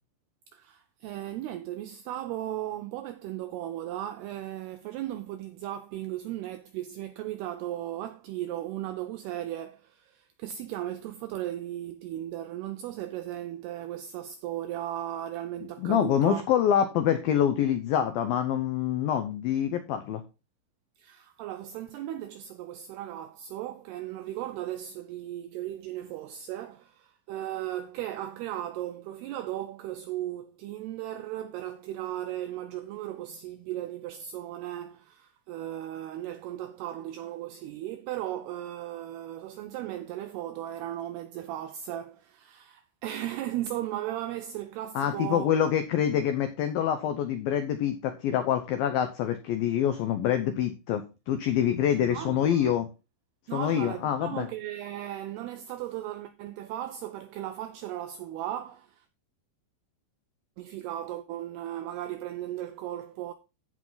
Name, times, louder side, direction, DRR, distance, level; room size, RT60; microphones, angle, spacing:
voice 1, 0.5-16.4 21.0-45.5 52.1-52.8 53.5-59.1 60.6-63.3, right 13 dB, 85° right, 2.3 m, -36 dB
voice 2, 15.8-20.2 45.0-52.9 53.5-54.5, left 9 dB, 90° left, 2.0 m, -26 dB
15.5 x 5.1 x 3.9 m
omnidirectional pair, 5.4 m